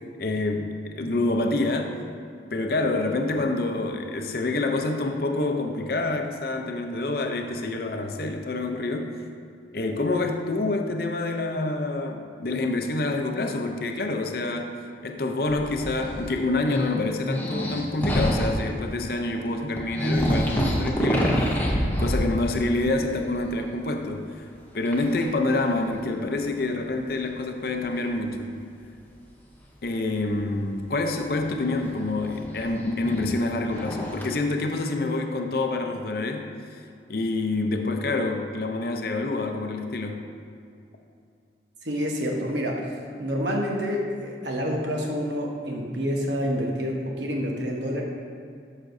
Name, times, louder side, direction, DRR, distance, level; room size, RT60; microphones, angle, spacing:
voice 1, 0.2-1.9 2.5-9.2 9.7-21.5 22.0-24.4 24.7-28.5 29.8-36.8 37.1-40.2, left 2 dB, 55° left, 4 dB, 0.6 m, -27 dB
sound 1, 15.5-16.3 16.6-18.7 19.4-19.5 19.8-22.8 23.1-23.6 24.8-25.2 25.9-26.0 27.9-28.0 31.1-34.3, equal, 10° left, 0.7 m, -27 dB
voice 2, 41.8-42.9 43.2-48.0, equal, 75° right, 0 dB, 1.1 m, -28 dB
9.5 x 6.6 x 2.6 m, 2.4 s
head